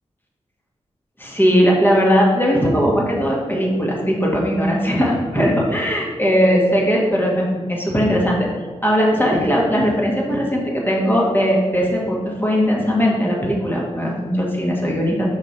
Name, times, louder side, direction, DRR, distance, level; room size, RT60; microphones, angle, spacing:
voice 1, 1.2-8.5 8.8-15.3, equal, 15° left, -3 dB, 1.5 m, -19 dB
5.3 x 5.1 x 4.2 m, 1.4 s
wide cardioid pair, 85°, 12 cm